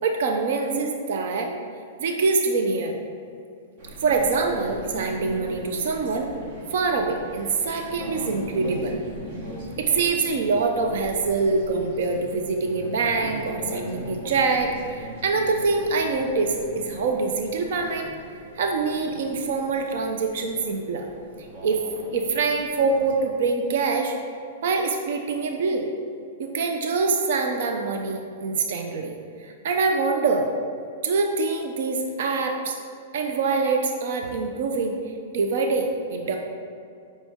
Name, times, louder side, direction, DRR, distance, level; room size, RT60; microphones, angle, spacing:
voice 1, 0.0-1.5 2.0-2.9 4.0-6.3 6.7-9.0 9.8-18.1 18.5-21.1 21.6-21.8 22.1-24.1 24.6-25.9 26.4-29.1 29.4-30.5 31.0-32.8 33.1-35.0 35.3-36.4, right 4 dB, 55° right, 3 dB, 0.6 m, -24 dB
sound 1, 3.8-23.1, equal, 40° right, 1.2 m, -39 dB
8.1 x 5.4 x 3.6 m, 2.5 s
supercardioid pair, 175°, 0 cm